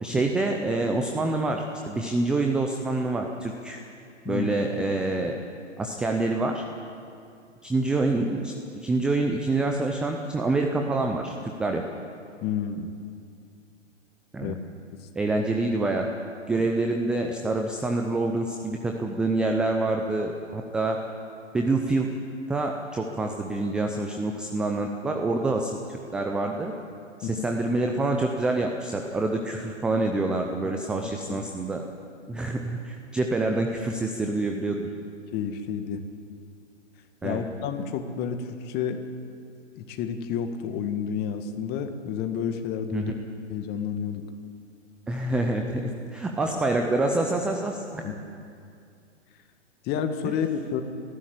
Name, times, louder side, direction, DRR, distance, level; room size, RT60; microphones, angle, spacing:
voice 1, 0.0-3.8 4.3-5.3 5.8-6.6 7.6-8.5 8.8-11.8 14.3-14.6 15.2-16.1 16.5-21.0 21.5-22.1 22.5-26.7 27.2-31.8 32.3-34.9 37.2-37.4 42.9-43.1 45.1-48.0, right 2 dB, ahead, 3 dB, 0.4 m, -26 dB
voice 2, 12.4-12.9 14.4-14.6 16.6-16.7 27.2-27.5 30.6-30.7 31.0-31.5 35.3-36.0 37.2-39.1 39.8-43.1 43.5-44.3 48.0-48.2 49.8-50.8, left 7 dB, 25° left, 7 dB, 1.8 m, -30 dB
19.0 x 14.5 x 9.9 m, 2.4 s
figure-of-eight pair, 120°, 37 cm